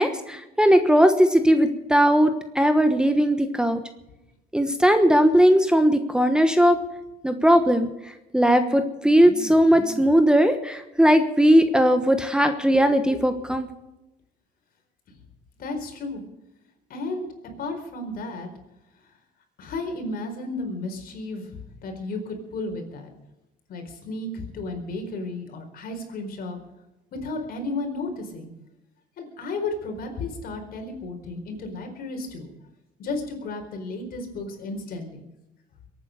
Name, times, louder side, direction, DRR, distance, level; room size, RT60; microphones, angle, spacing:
voice 1, 0.0-3.8 4.5-6.8 7.2-7.9 8.3-13.7, equal, 5° right, 8 dB, 1.2 m, -18 dB
voice 2, 15.6-16.2 16.9-17.3 17.6-18.5 19.0-19.1 19.6-23.1 23.7-26.6 27.2-28.5 29.2-32.5 33.0-35.2, left 2 dB, 60° left, 4 dB, 4.5 m, -33 dB
22.5 x 9.2 x 6.7 m, 0.96 s
cardioid pair, 110°, 17 cm